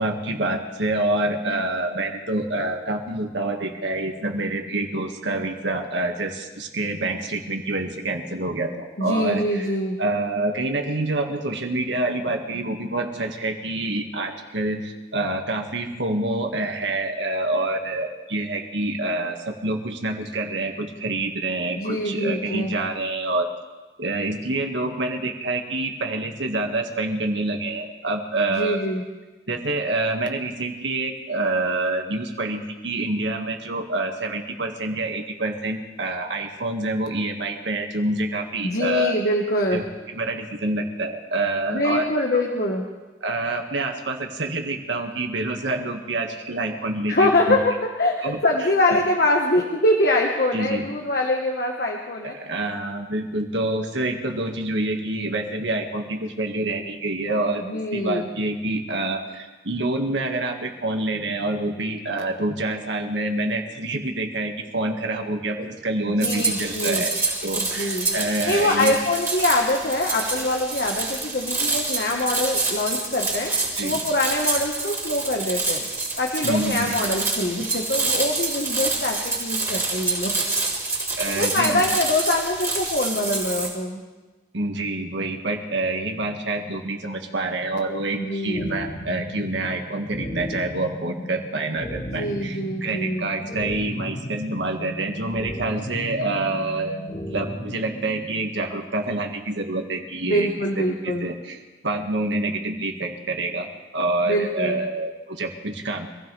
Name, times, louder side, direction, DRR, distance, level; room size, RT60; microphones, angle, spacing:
voice 1, 0.0-9.7 10.0-23.5 24.0-28.8 29.5-39.1 39.7-42.1 42.3-42.4 43.2-47.6 48.2-48.4 48.9-49.0 50.5-50.9 52.2-67.2 67.4-69.0 73.8-74.0 76.4-77.0 81.2-81.8 84.5-97.0 97.3-100.5 100.8-106.1, right 2 dB, 75° right, 3 dB, 1.9 m, -27 dB
voice 2, 9.0-10.0 21.8-22.7 28.5-29.0 38.6-39.8 41.7-42.8 47.1-52.3 57.6-58.3 66.0-67.0 67.6-68.1 68.5-73.5 73.8-75.8 76.2-80.3 81.4-84.0 88.1-88.7 92.0-93.3 100.3-101.3 104.3-104.9, left 1 dB, 55° left, 0 dB, 1.5 m, -24 dB
sound 1, 66.2-83.7, right 3 dB, 15° right, 3.5 m, -27 dB
sound 2, 88.6-98.5, equal, 35° left, 1.6 m, -35 dB
25.5 x 16.0 x 3.4 m, 1.2 s
head